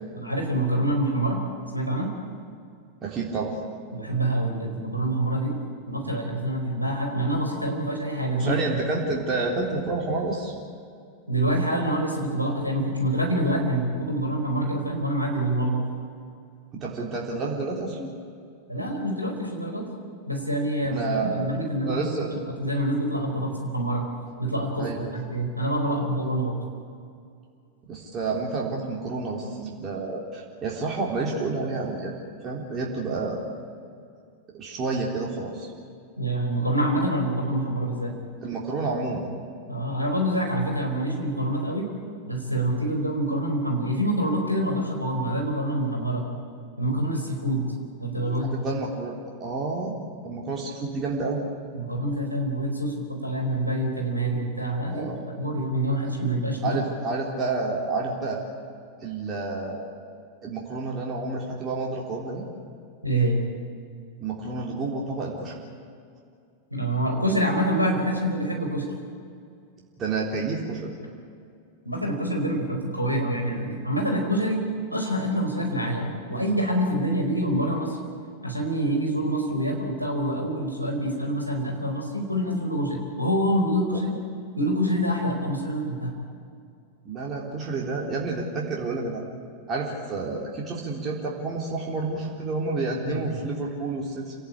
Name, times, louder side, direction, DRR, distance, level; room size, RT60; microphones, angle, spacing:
voice 1, 0.1-1.4 1.7-2.1 3.9-5.5 5.9-9.0 11.3-15.8 18.7-19.8 20.3-22.0 22.6-24.1 24.4-26.6 36.2-38.1 39.7-41.9 42.2-46.3 46.8-47.6 48.0-48.7 51.7-55.0 55.4-56.8 63.0-63.4 66.7-68.8 71.8-74.6 74.9-78.0 78.4-84.2 84.6-86.1 93.0-93.3, right 1 dB, 90° left, 1 dB, 4.6 m, -26 dB
voice 2, 3.0-3.6 8.4-10.5 16.7-18.1 20.9-21.5 21.8-22.3 24.8-25.1 27.9-33.4 34.6-35.7 38.4-39.3 48.2-49.9 50.2-51.4 54.9-55.2 56.6-58.4 59.0-59.8 60.4-62.4 64.2-65.6 70.0-70.9 83.9-84.0 87.1-89.2 89.7-94.3, right 3 dB, 25° right, -2 dB, 3.5 m, -29 dB
28.0 x 17.5 x 8.7 m, 2.4 s
figure-of-eight pair, 90°, 0 cm